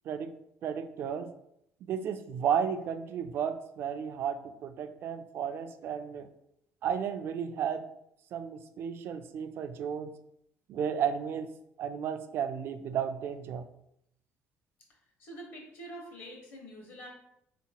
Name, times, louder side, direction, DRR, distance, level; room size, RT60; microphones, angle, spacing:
voice 1, 0.6-1.3 1.9-6.3 6.8-7.8 8.3-10.1 10.7-11.5 11.8-13.6, right 8 dB, 55° right, 10 dB, 0.3 m, -33 dB
voice 2, 15.2-17.1, right 1 dB, 55° left, 0 dB, 1.2 m, -45 dB
3.8 x 2.9 x 2.8 m, 0.77 s
cardioid pair, 130°, 5 cm